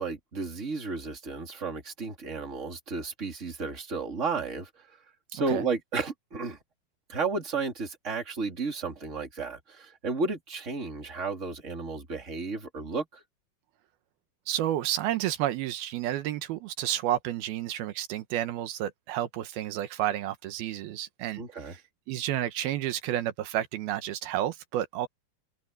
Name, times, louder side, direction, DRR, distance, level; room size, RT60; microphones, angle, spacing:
voice 1, 0.0-4.7 5.3-6.6 7.1-13.2 21.4-21.7, right 4 dB, 20° right, 3.3 m, -33 dB
voice 2, 14.5-21.8 22.1-25.1, right 12 dB, 85° right, 3.0 m, -31 dB
omnidirectional pair, 4.3 m